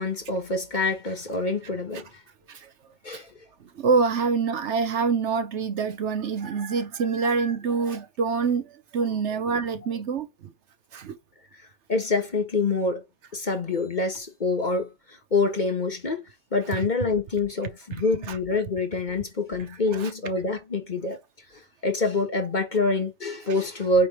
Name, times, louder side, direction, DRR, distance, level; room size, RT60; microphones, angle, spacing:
voice 1, 0.0-2.1 3.0-3.3 11.9-13.0 13.3-14.9 15.3-16.2 16.5-21.2 21.8-24.1, left 3 dB, 35° left, 1.5 m, -26 dB
voice 2, 3.8-10.3 10.9-11.2 18.3-18.4 19.9-20.1, right 5 dB, 70° right, 1.1 m, -26 dB
8.6 x 3.3 x 4.3 m
omnidirectional pair, 1.3 m